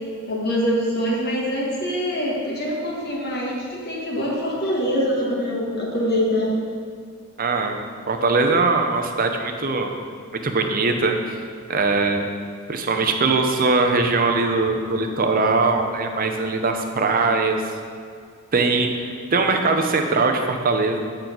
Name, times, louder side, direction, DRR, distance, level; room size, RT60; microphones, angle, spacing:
voice 1, 0.3-6.5, equal, 45° left, -3 dB, 1.6 m, -24 dB
voice 2, 7.4-7.8 8.1-9.9 10.4-11.1 11.7-12.3 12.7-17.6 18.5-21.0, right 3 dB, 40° right, 4 dB, 0.7 m, -21 dB
8.8 x 3.9 x 6.0 m, 2.2 s
head